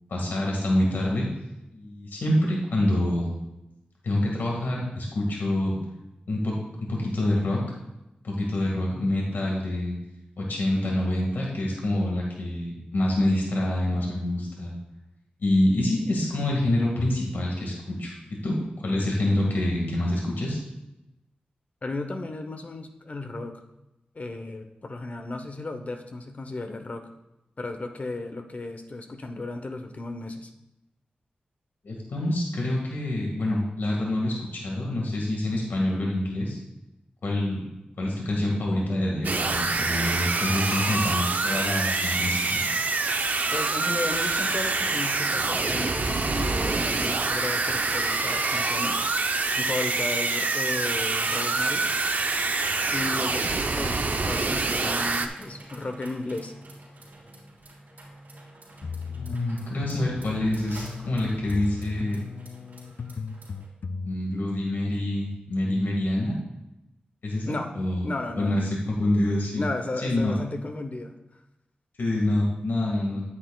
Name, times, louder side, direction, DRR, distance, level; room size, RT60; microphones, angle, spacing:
voice 1, 0.1-1.3 1.7-3.3 4.0-5.7 6.3-6.6 6.9-7.6 8.2-10.0 10.4-14.8 15.4-18.2 18.4-20.6 31.8-36.6 37.2-37.6 38.0-42.6 59.1-62.2 64.0-66.4 67.2-68.0 68.4-69.7 70.0-70.3 72.0-73.2, left 1 dB, 85° left, -2 dB, 1.9 m, -26 dB
voice 2, 21.8-23.5 24.1-27.1 27.6-30.5 43.5-49.0 49.6-51.9 52.9-56.5 67.5-67.7 68.0-68.7 69.6-71.1, left 2 dB, 50° left, 6 dB, 0.9 m, -34 dB
sound 1, 39.2-55.3, right 3 dB, 60° right, 0.7 m, -26 dB
sound 2, 54.1-63.7, right 1 dB, 80° right, 3.3 m, -48 dB
sound 3, 58.8-64.1, left 5 dB, 65° left, 0.3 m, -37 dB
9.7 x 9.0 x 2.4 m, 0.91 s
wide cardioid pair, 70°, 3 cm